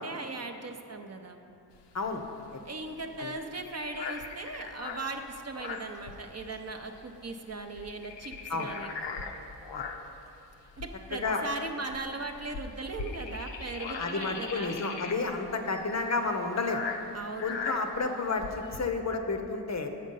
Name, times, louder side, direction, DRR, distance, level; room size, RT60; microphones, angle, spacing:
voice 1, 0.0-1.4 2.6-8.9 10.8-14.8 17.1-17.6, right 3 dB, 35° right, 5 dB, 0.6 m, -38 dB
sound 1, 1.7-6.7 7.0-7.2 7.5-10.2 10.7-18.8, left 4 dB, 85° left, 0.6 m, -40 dB
voice 2, 14.0-16.8 17.4-19.9, left 3 dB, 40° left, 5 dB, 0.6 m, -31 dB
7.4 x 5.2 x 5.4 m, 2.6 s
cardioid pair, 55°, 42 cm